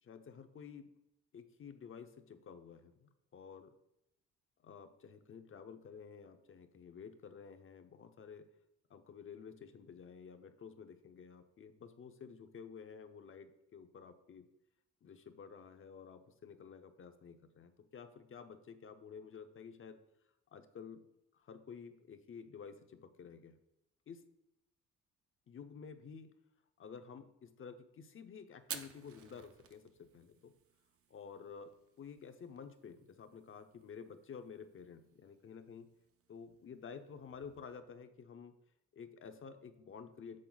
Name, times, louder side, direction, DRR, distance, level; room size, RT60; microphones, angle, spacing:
voice 1, 0.0-0.9 1.3-3.7 4.6-8.4 8.9-14.5 15.0-20.0 20.5-21.0 21.3-23.6 24.1-24.2 25.5-26.3 26.8-30.5 31.1-35.9 36.3-38.5 38.9-40.4, left 6 dB, 45° left, 8 dB, 0.7 m, -52 dB
Fire, 28.6-37.8, right 7 dB, 50° right, 0.7 m, -55 dB
7.7 x 4.0 x 3.9 m, 0.82 s
cardioid pair, 90°, 30 cm